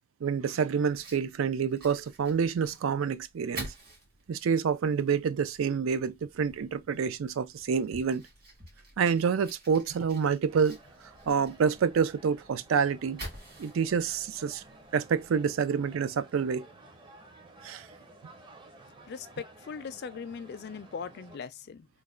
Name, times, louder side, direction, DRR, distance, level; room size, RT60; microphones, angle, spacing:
voice 1, 0.2-3.7 4.3-8.2 9.0-10.8 11.3-13.2 13.6-14.6 14.9-16.7 17.6-17.9, right 6 dB, 85° right, 0.4 m, -28 dB
Fire, 0.9-15.5, right 1 dB, 45° right, 1.8 m, -49 dB
sound 1, 10.5-21.4, right 2 dB, 25° right, 0.7 m, -54 dB
voice 2, 19.1-21.9, left 5 dB, 55° left, 0.4 m, -40 dB
3.1 x 2.1 x 3.6 m
head